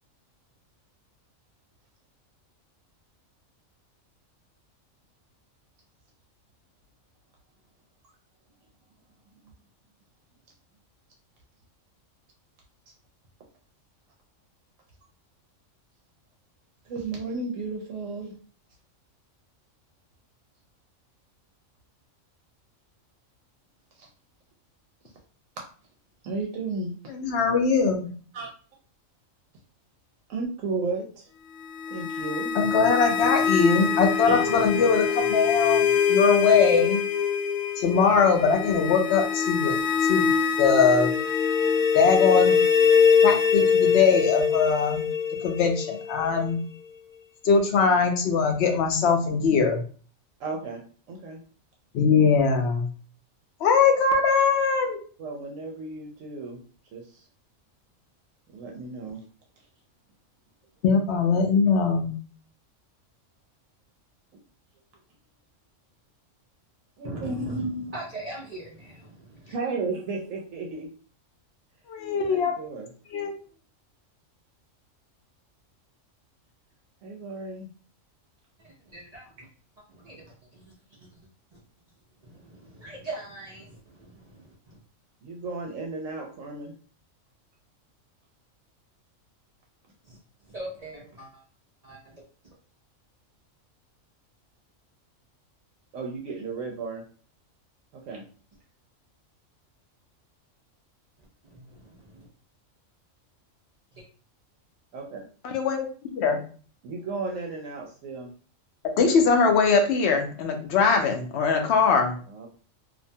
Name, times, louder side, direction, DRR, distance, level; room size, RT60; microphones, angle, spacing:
voice 1, 16.8-18.4 23.9-24.1 26.2-26.9 28.3-28.5 30.3-31.3 31.9-32.5 34.2-34.4 50.4-50.8 51.1-51.4 55.2-56.6 56.9-57.3 58.5-59.2 67.0-67.6 69.5-70.9 72.3-72.9 77.0-77.7 85.2-86.7 95.9-97.0 97.9-98.2 104.9-105.2 106.8-108.3 112.3-112.5, right 3 dB, 80° right, 1 dB, 0.9 m, -34 dB
voice 2, 27.1-28.1 32.6-37.0 37.8-39.8 40.0-40.3 40.6-41.1 41.9-42.6 43.2-45.1 45.4-46.6 47.4-49.8 51.9-52.9 53.6-55.0 60.8-62.1 71.9-72.5 73.1-73.3 105.4-105.9 106.1-106.4 109.0-112.1, left 5 dB, 65° left, 3 dB, 0.8 m, -21 dB
sound 1, 31.6-46.5, left 6 dB, 90° left, 1.0 m, -23 dB
voice 3, 67.0-68.7 69.5-69.6 78.9-79.5 79.9-80.7 81.0-81.1 82.2-84.8 90.0-90.2 90.4-91.4 91.8-92.5 101.4-102.3 103.9-104.0, right 2 dB, 55° right, -5 dB, 0.4 m, -39 dB
2.6 x 2.2 x 2.6 m, 0.41 s
omnidirectional pair, 1.4 m